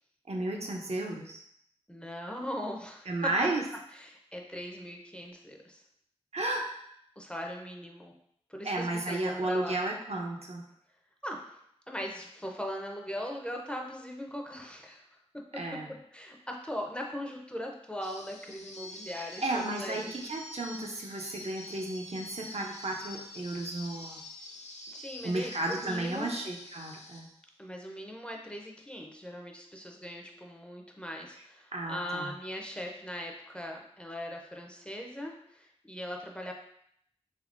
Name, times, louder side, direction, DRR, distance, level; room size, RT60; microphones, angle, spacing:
voice 1, 0.3-1.4 3.1-3.6 6.3-6.7 8.6-10.6 15.6-15.9 19.2-24.2 25.2-27.3 31.7-32.3, right 2 dB, 65° right, 0 dB, 0.5 m, -33 dB
voice 2, 1.9-3.3 3.9-5.8 7.2-8.1 8.5-9.8 11.2-11.5 11.9-15.1 16.1-20.1 24.9-26.3 27.6-36.5, equal, 10° left, 0 dB, 0.5 m, -40 dB
sound 1, 18.0-27.4, left 1 dB, 85° left, 0.4 m, -47 dB
3.5 x 3.0 x 2.5 m, 0.71 s
wide cardioid pair, 55°, 11 cm